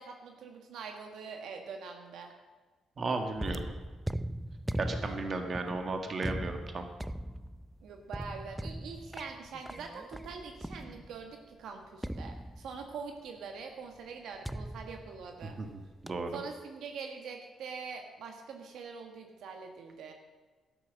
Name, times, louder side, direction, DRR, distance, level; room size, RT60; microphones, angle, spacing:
voice 1, 0.0-2.3 5.0-5.2 7.8-15.6 16.3-20.1, right 5 dB, 75° right, 3 dB, 1.5 m, -44 dB
voice 2, 3.0-3.7 4.8-6.9 15.4-15.7 16.0-16.3, right 3 dB, 45° right, 5 dB, 1.9 m, -34 dB
sound 1, 3.4-11.3 12.0-13.0 14.4-15.7 16.1-16.4, right 1 dB, 5° right, 0.5 m, -40 dB
12.5 x 10.5 x 6.4 m, 1.3 s
cardioid pair, 90°, 0 cm